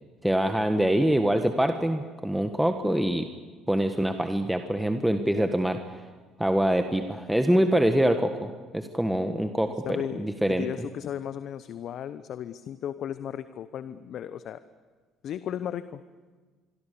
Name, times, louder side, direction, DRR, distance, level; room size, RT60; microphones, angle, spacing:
voice 1, 0.2-3.3 3.7-5.8 6.4-10.7, right 1 dB, 5° right, 6 dB, 1.6 m, -25 dB
voice 2, 9.8-14.6 15.2-16.0, left 9 dB, 60° left, 13 dB, 0.8 m, -35 dB
25.5 x 23.5 x 7.0 m, 1.4 s
hypercardioid pair, 65°, 0 cm